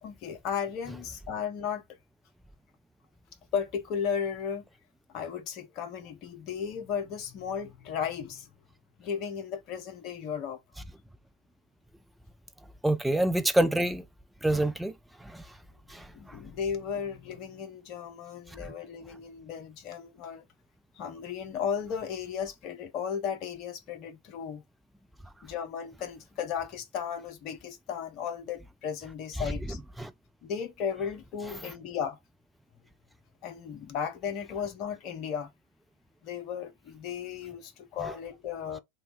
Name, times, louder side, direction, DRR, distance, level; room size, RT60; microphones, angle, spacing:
voice 1, 0.0-1.8 3.5-4.6 5.1-8.5 9.0-10.6 16.1-20.4 20.9-24.6 25.4-29.8 30.4-32.2 33.4-35.5 36.2-38.8, left 7 dB, 40° left, 0.6 m, -35 dB
voice 2, 12.8-14.0 14.4-14.9 15.2-15.4 15.9-16.1 30.0-30.1 38.0-38.1, right 1 dB, 5° right, 0.3 m, -26 dB
2.7 x 2.2 x 3.8 m
figure-of-eight pair, 90°, 0 cm